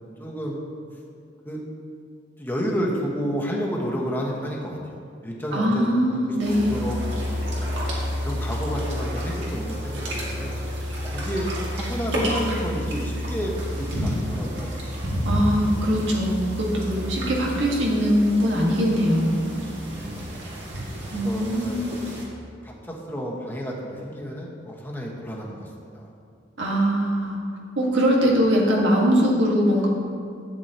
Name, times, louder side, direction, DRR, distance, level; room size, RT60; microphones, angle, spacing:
voice 1, 0.2-0.6 1.4-1.6 2.4-6.0 6.4-7.0 8.2-10.5 11.1-14.8 19.9-20.4 21.1-21.9 22.6-26.1, equal, 10° left, -3 dB, 1.3 m, -31 dB
voice 2, 5.5-6.8 15.2-19.4 21.1-21.9 26.6-27.4 27.8-29.9, equal, 90° right, -3 dB, 1.6 m, -22 dB
sound 1, 6.4-22.2, equal, 70° right, 2.1 m, -30 dB
12.0 x 8.3 x 2.9 m, 2.4 s
head